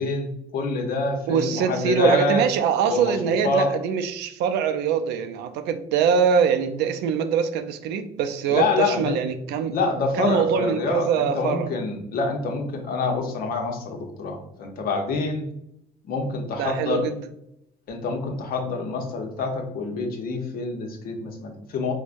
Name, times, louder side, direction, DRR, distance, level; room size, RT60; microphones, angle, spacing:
voice 1, 0.0-2.4 2.8-3.7 8.5-9.2 9.7-15.4 16.0-17.1 17.9-21.9, left 3 dB, 60° left, 0.8 m, -26 dB
voice 2, 1.3-9.8 10.2-11.7 16.6-17.2, right 7 dB, 85° right, 0.4 m, -23 dB
4.6 x 2.2 x 2.5 m
cardioid pair, 110°, 17 cm